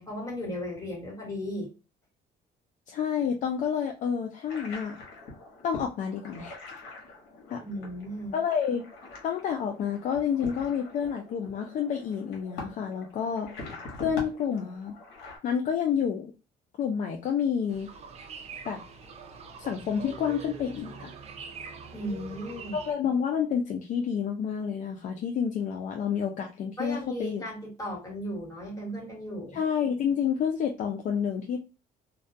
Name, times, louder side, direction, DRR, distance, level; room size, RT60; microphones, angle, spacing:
voice 1, 0.0-1.7 7.6-8.4 21.9-22.8 26.8-29.6, equal, 20° left, -3 dB, 1.3 m, -36 dB
voice 2, 2.9-5.0 5.6-6.5 7.5-7.6 8.3-8.9 9.2-13.5 14.0-14.9 15.4-16.3 16.8-17.9 18.7-18.8 19.6-21.1 22.7-27.4 29.5-31.6, left 7 dB, 50° left, 4 dB, 0.4 m, -29 dB
sound 1, 4.5-15.4, left 3 dB, 85° left, 1.0 m, -44 dB
sound 2, 17.7-22.9, right 4 dB, 40° right, 0.5 m, -43 dB
2.3 x 2.2 x 2.5 m, 0.32 s
cardioid pair, 110°, 17 cm